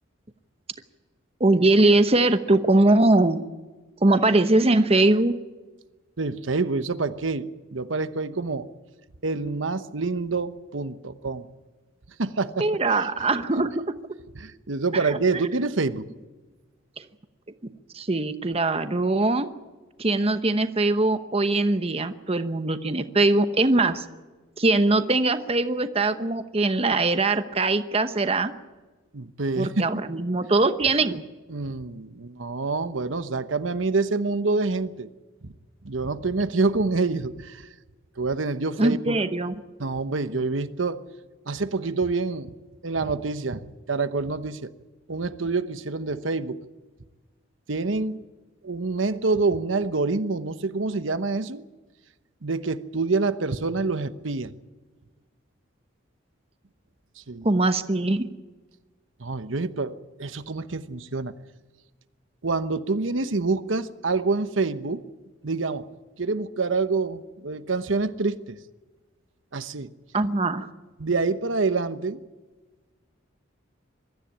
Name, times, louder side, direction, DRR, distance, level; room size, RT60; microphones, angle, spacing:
voice 1, 1.4-3.4 4.0-5.3 12.6-13.7 15.0-15.2 17.9-19.5 20.0-24.0 24.6-28.5 29.6-31.2 38.8-39.5 57.4-58.3 70.1-70.7, right 2 dB, 30° right, 10 dB, 0.9 m, -21 dB
voice 2, 6.2-8.7 9.2-11.5 12.2-12.7 13.6-13.7 14.4-16.1 29.1-29.7 31.5-35.1 35.4-35.5 35.8-37.7 38.2-39.2 39.8-41.0 41.5-42.5 42.8-44.7 45.1-46.6 47.7-48.3 48.6-51.6 52.4-54.5 57.3-57.5 59.2-61.3 62.4-65.0 65.4-65.9 66.2-68.6 69.5-69.9 71.0-72.2, right 3 dB, 75° right, 12 dB, 1.0 m, -27 dB
22.5 x 13.5 x 9.9 m, 1.3 s
head